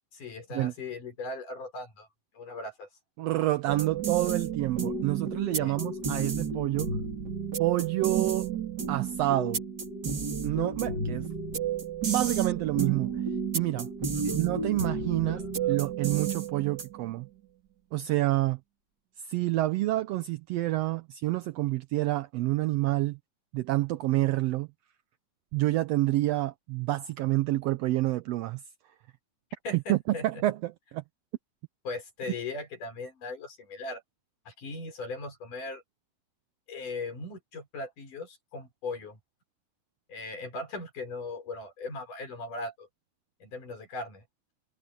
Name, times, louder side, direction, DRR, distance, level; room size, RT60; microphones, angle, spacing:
voice 1, 0.1-2.1 2.3-2.9 5.6-5.8 14.1-14.4 15.2-15.9 29.6-30.2 31.9-34.0 34.5-35.8 36.7-39.2 40.1-42.9 43.4-44.2, left 3 dB, 85° left, 7.6 m, -38 dB
voice 2, 3.2-7.0 7.6-8.5 8.9-9.6 10.4-11.3 12.1-13.1 13.5-13.9 14.3-17.3 17.9-18.6 19.2-23.2 23.5-24.7 25.5-28.6 29.7-31.0, right 17 dB, 80° right, 1.4 m, -28 dB
sound 1, 3.7-17.1, right 6 dB, 35° right, 3.2 m, -32 dB
omnidirectional pair, 3.6 m